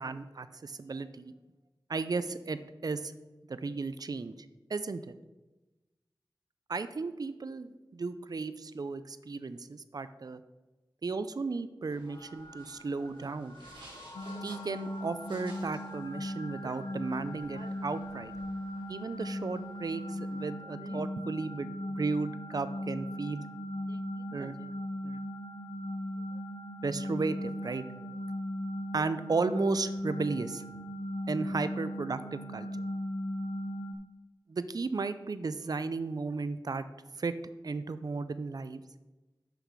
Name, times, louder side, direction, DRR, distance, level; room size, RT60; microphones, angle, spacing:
voice 1, 0.0-1.3 1.9-3.1 3.5-4.3 4.7-5.0 6.7-10.4 11.0-13.6 14.4-18.3 18.9-23.4 23.9-24.0 24.3-24.7 25.0-25.2 26.8-27.8 28.9-30.6 31.3-32.7 34.5-36.8 37.2-37.3 37.6-38.8, right 4 dB, 50° right, 13 dB, 0.4 m, -34 dB
sound 1, 11.8-20.5, right 1 dB, 75° right, 2.8 m, -56 dB
sound 2, 12.0-19.3, left 1 dB, 45° left, 0.9 m, -54 dB
sound 3, 14.1-33.9, equal, 85° left, 0.6 m, -38 dB
6.8 x 5.7 x 4.7 m, 1.1 s
wide cardioid pair, 50°, 8 cm